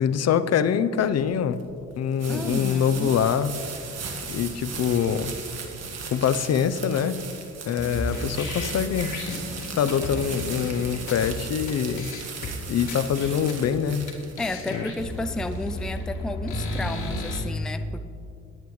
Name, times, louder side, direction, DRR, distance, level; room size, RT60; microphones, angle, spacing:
voice 1, 0.0-1.6 2.0-3.5 4.3-5.3 6.1-7.2 7.7-9.1 9.7-12.1 12.7-14.1 14.7-14.8, left 8 dB, 55° left, 13 dB, 0.7 m, -24 dB
sound 1, 1.0-15.9, right 5 dB, 55° right, 1.8 m, -38 dB
voice 2, 2.3-3.2 14.4-18.1, left 2 dB, ahead, 9 dB, 0.5 m, -32 dB
sound 2, 7.8-11.3 11.7-11.8 12.0-12.5 12.9-13.7 14.1-14.2 14.4-17.4, left 1 dB, 75° left, 2.1 m, -33 dB
21.0 x 9.0 x 3.2 m, 2.7 s
cardioid pair, 90°, 30 cm